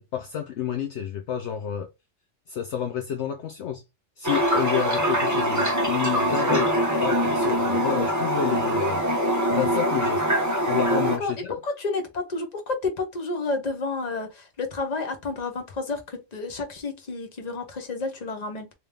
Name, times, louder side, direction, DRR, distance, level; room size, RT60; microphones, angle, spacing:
voice 1, 0.0-1.9 2.5-3.8 4.2-9.0 9.5-10.2 10.7-11.6, left 9 dB, 65° left, 0.8 m, -30 dB
Toilet flush, 4.2-11.2, equal, 15° right, 1.0 m, -23 dB
voice 2, 10.8-11.3 11.6-18.7, left 3 dB, 35° left, 1.0 m, -30 dB
3.5 x 2.9 x 3.3 m
omnidirectional pair, 1.3 m